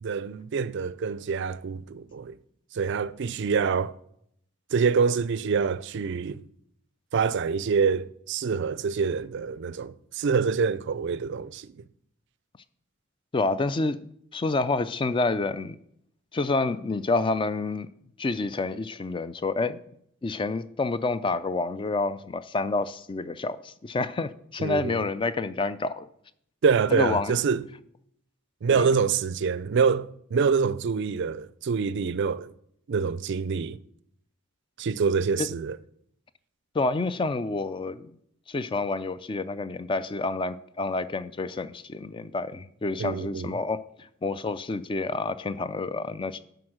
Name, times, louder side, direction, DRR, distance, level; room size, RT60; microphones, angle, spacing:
voice 1, 0.0-2.4 2.7-3.9 4.7-6.4 7.1-11.8 24.6-25.0 26.6-27.6 28.6-32.5 32.9-33.8 34.8-35.8 43.0-43.5, right 5 dB, 55° right, 0.4 m, -26 dB
voice 2, 13.3-14.1 14.3-15.8 16.3-17.9 18.2-19.8 20.2-26.1 26.9-27.4 28.7-28.9 35.4-35.5 36.7-38.1 38.5-46.4, left 3 dB, 25° left, 0.3 m, -28 dB
10.5 x 3.9 x 6.4 m
head